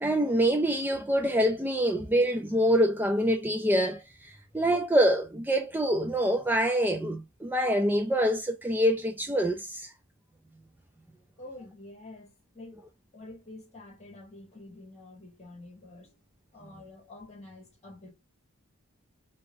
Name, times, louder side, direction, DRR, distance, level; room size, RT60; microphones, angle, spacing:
voice 1, 0.0-9.9, equal, 10° right, 0.4 m, -25 dB
voice 2, 11.4-12.8 13.1-16.2 16.5-18.1, left 2 dB, 30° left, 2.0 m, -48 dB
4.7 x 3.1 x 2.7 m
head